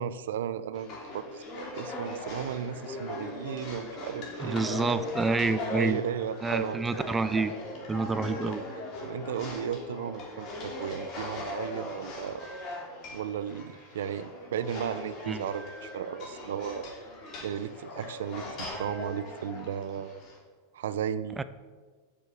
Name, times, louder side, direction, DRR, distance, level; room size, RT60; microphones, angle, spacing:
voice 1, 0.0-1.4 1.7-5.0 5.7-7.1 8.5-8.6 9.0-12.5 13.1-16.9 17.4-20.2 20.7-21.4, right 9 dB, 85° right, 14 dB, 0.7 m, -35 dB
sound 1, 0.7-20.4, left 2 dB, 35° left, 3.0 m, -39 dB
voice 2, 4.4-6.0 6.4-7.5 7.9-8.6 15.3-15.4 21.4-21.5, right 3 dB, 10° right, 12 dB, 0.5 m, -28 dB
9.7 x 7.1 x 8.4 m, 1.5 s
supercardioid pair, 160°, 0 cm